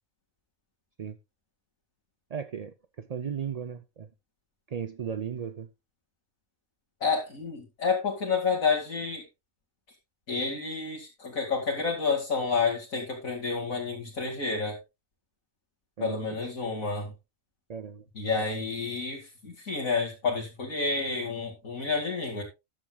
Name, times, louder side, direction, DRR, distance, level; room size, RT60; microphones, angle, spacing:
voice 1, 2.3-4.1 4.7-5.7 16.0-16.5 17.7-18.0 18.3-18.4, right 7 dB, 50° right, 0.4 m, -36 dB
voice 2, 7.0-9.2 10.3-14.8 16.0-17.1 18.1-22.4, left 4 dB, 80° left, 2.8 m, -29 dB
14.0 x 10.5 x 2.3 m
omnidirectional pair, 1.4 m